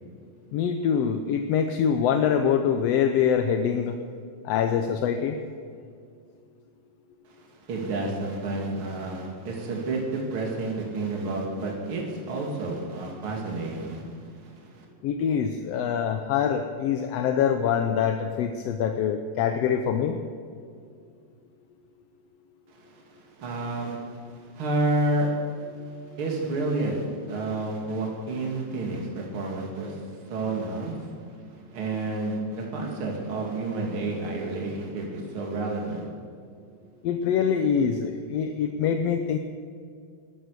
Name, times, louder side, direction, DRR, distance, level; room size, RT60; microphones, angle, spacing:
voice 1, 0.5-4.0 4.4-5.4 15.0-20.2 37.0-39.4, left 7 dB, 70° left, 6 dB, 1.7 m, -24 dB
voice 2, 7.2-14.8 22.7-25.6 25.9-31.1 31.5-36.1, right 2 dB, 45° right, -1 dB, 3.3 m, -30 dB
14.0 x 12.5 x 6.7 m, 2.3 s
omnidirectional pair, 3.3 m